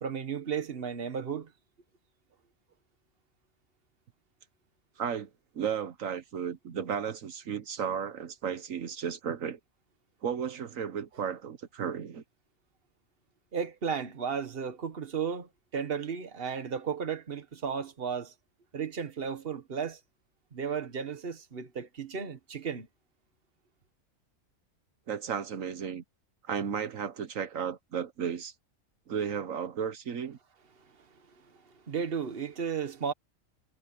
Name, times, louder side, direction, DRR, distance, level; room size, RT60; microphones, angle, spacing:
voice 1, 0.0-1.5 13.5-18.3 18.7-20.0 20.5-22.9 31.0-31.1 31.4-33.1, right 6 dB, 45° right, 1.6 m, -34 dB
voice 2, 5.0-5.3 5.5-9.6 10.2-12.2 25.1-26.0 26.5-28.5 29.1-30.4, right 7 dB, 80° right, 1.5 m, -34 dB
omnidirectional pair, 1.4 m